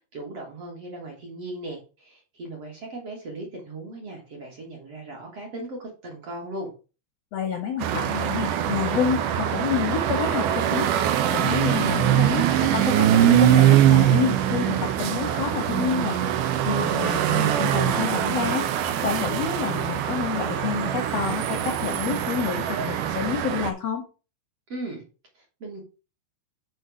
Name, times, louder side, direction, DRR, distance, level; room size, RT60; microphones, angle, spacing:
voice 1, 0.1-6.7 24.7-25.0 25.3-25.8, right 2 dB, 45° right, 0 dB, 2.3 m, -37 dB
voice 2, 7.3-10.9 11.3-16.2 16.6-18.7 19.0-24.0, left 7 dB, 70° left, 3 dB, 1.6 m, -28 dB
sound 1, 7.8-23.7, right 11 dB, 85° right, 1.8 m, -22 dB
6.4 x 4.3 x 6.3 m, 0.33 s
omnidirectional pair, 4.6 m